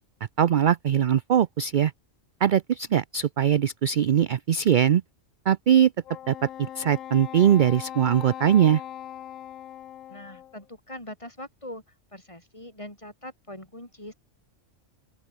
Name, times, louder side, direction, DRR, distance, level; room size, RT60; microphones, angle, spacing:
voice 1, 0.4-1.9 2.4-5.0 5.5-5.9 6.3-6.4 6.8-8.8, right 9 dB, 55° right, 0.6 m, -21 dB
Wind instrument woodwind instrument, 6.0-10.6, left 11 dB, 85° left, 1.1 m, -40 dB
voice 2, 10.1-11.8 12.1-14.1, left 1 dB, 25° left, 5.5 m, -42 dB
open air
omnidirectional pair, 1.3 m